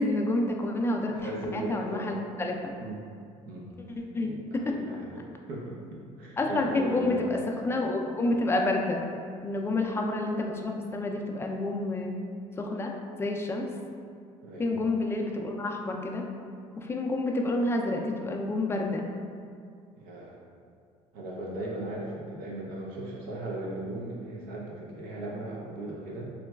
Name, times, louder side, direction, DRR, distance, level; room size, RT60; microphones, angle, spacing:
voice 1, 0.0-2.7 4.1-4.4 4.7-4.8 6.4-9.0 9.4-12.2 12.6-12.9 13.2-13.7 14.6-16.3 16.8-19.1, left 2 dB, 15° left, 1 dB, 0.3 m, -29 dB
voice 2, 1.2-2.3 2.8-3.0 3.4-3.7 4.2-7.3 14.4-14.8 20.0-20.4 21.1-26.3, right 1 dB, 75° right, -3 dB, 0.6 m, -37 dB
3.8 x 2.2 x 2.2 m, 2.3 s
supercardioid pair, 85°, 15 cm